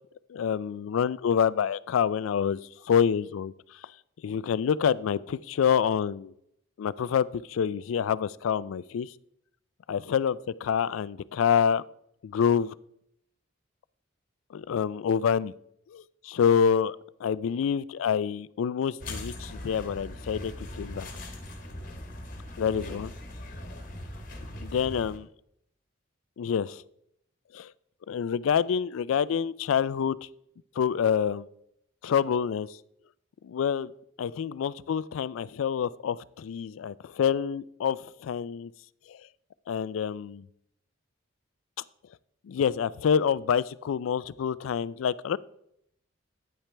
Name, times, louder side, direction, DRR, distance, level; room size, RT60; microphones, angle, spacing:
voice 1, 0.3-2.6 2.8-3.5 4.2-6.3 6.8-9.1 9.9-11.8 12.2-12.7 14.5-15.5 15.9-17.0 17.2-21.1 22.6-23.1 24.6-25.3 26.4-26.8 27.5-27.7 28.1-30.2 30.8-31.5 32.0-32.7 33.4-33.9 34.2-38.7 39.1-39.2 39.7-40.4 42.5-45.4, left 7 dB, 85° left, 20 dB, 0.3 m, -27 dB
sound 1, 19.0-25.2, left 1 dB, 45° left, 1.3 m, -40 dB
9.8 x 8.9 x 3.3 m, 0.74 s
head